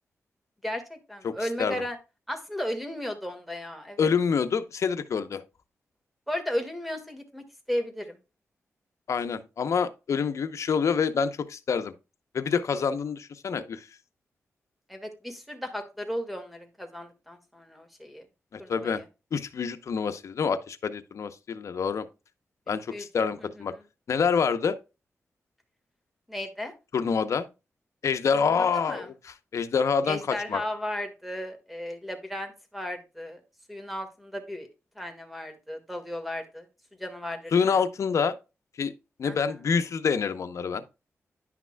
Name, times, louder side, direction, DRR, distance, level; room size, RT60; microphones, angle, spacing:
voice 1, 0.6-2.0 2.3-4.1 6.3-8.2 14.9-18.2 18.6-19.0 22.9-23.0 23.4-23.8 26.3-26.7 28.3-29.1 30.0-33.4 33.7-34.7 34.9-36.7 37.0-37.7 39.2-39.5, left 1 dB, ahead, 1.7 m, -35 dB
voice 2, 4.0-5.4 9.1-11.9 12.3-13.9 18.5-19.0 19.3-22.1 22.7-23.7 24.1-24.8 26.9-27.5 28.0-29.1 29.5-30.6 37.5-38.3 38.8-38.9 39.2-40.8, left 6 dB, 70° left, 0.7 m, -26 dB
10.0 x 5.9 x 2.2 m
wide cardioid pair, 95°, 5 cm